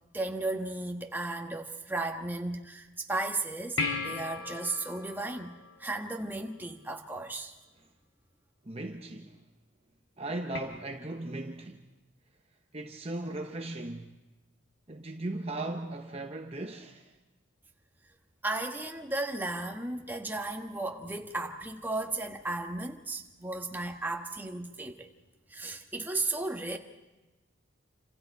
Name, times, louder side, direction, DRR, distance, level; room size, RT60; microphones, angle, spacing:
voice 1, 0.1-7.5 18.4-25.1 25.5-26.8, right 2 dB, 10° right, 1.3 m, -35 dB
sound 1, 3.8-6.5 10.5-10.6, left 3 dB, 75° left, 2.7 m, -36 dB
voice 2, 8.6-9.4 10.2-11.8 12.7-14.1 14.9-17.1, right 2 dB, 30° right, 0.9 m, -37 dB
28.5 x 26.5 x 4.6 m
head